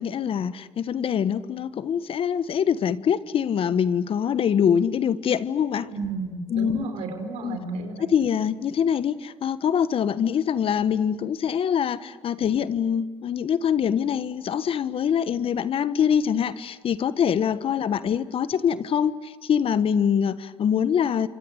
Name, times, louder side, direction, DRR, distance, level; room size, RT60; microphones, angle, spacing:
voice 1, 0.0-5.9 6.5-6.9 7.4-7.6 8.0-21.3, left 8 dB, 60° left, 15 dB, 1.5 m, -24 dB
voice 2, 5.9-8.1, right 3 dB, 80° right, 6 dB, 5.1 m, -32 dB
29.0 x 25.0 x 8.1 m, 1.4 s
supercardioid pair, 65°, 11 cm